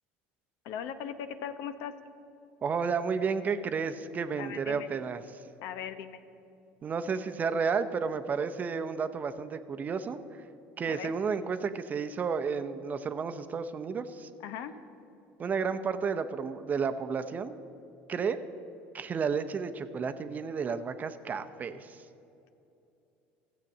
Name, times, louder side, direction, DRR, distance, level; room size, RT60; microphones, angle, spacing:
voice 1, 0.6-1.9 4.4-4.9 5.6-6.2 10.9-11.1 14.4-14.7, left 8 dB, 70° left, 10 dB, 0.8 m, -39 dB
voice 2, 2.6-5.4 6.8-10.4 10.8-14.3 15.4-17.6 18.1-18.4 18.9-22.0, right 5 dB, 35° right, 10 dB, 0.7 m, -32 dB
13.5 x 7.4 x 7.2 m, 2.8 s
supercardioid pair, 100°, 5 cm